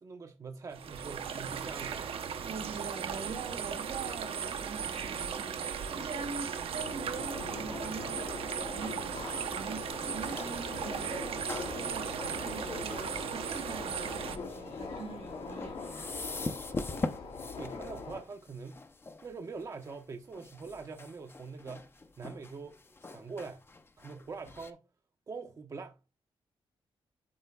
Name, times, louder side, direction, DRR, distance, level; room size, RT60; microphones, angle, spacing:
voice 1, 0.0-2.1 17.0-17.2 17.6-18.8 19.2-21.9 22.2-22.8 23.0-23.6 24.0-24.8 25.3-26.0, right 4 dB, 35° right, 0.6 m, -44 dB
sound 1, 0.7-14.4, right 7 dB, 70° right, 0.8 m, -37 dB
voice 2, 2.4-11.5 11.8-16.2, right 4 dB, 85° right, 2.1 m, -43 dB
Subway metro underground, 6.8-18.2, left 4 dB, 85° left, 2.8 m, -42 dB
sound 2, 9.9-24.7, left 3 dB, 25° left, 0.6 m, -44 dB
12.5 x 4.3 x 2.2 m
wide cardioid pair, 160°, 10 cm